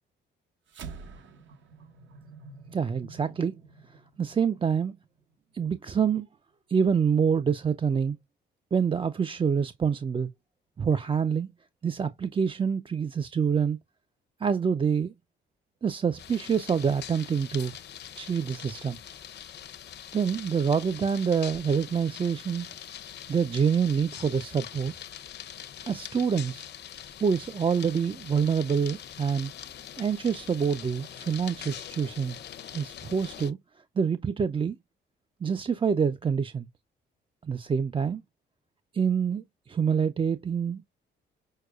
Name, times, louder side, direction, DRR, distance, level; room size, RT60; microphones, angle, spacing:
sound 1, 0.7-5.3, right 5 dB, 70° right, 1.1 m, -47 dB
voice 1, 2.7-3.6 3.9-4.9 5.5-6.3 6.7-8.2 8.7-10.3 10.8-11.5 11.8-13.8 14.4-15.1 15.8-17.7 18.2-19.0 20.1-22.7 23.3-24.9 25.9-26.7 27.2-29.5 30.0-32.4 32.7-33.6 34.0-34.8 35.4-36.7 37.4-38.2 38.9-40.8, right 6 dB, 25° right, 0.4 m, -26 dB
sound 2, 16.2-33.5, left 10 dB, 60° left, 0.7 m, -43 dB
6.4 x 2.2 x 2.3 m
cardioid pair, 90°, 20 cm